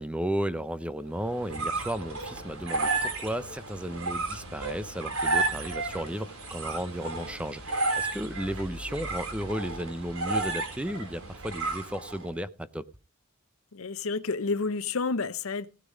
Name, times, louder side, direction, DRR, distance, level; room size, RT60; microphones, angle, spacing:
voice 1, 0.0-12.8, equal, 5° right, 0.7 m, -34 dB
sound 1, 1.1-12.3, right 3 dB, 85° right, 3.8 m, -32 dB
voice 2, 13.7-15.7, left 4 dB, 75° left, 0.8 m, -30 dB
17.0 x 6.8 x 5.1 m
head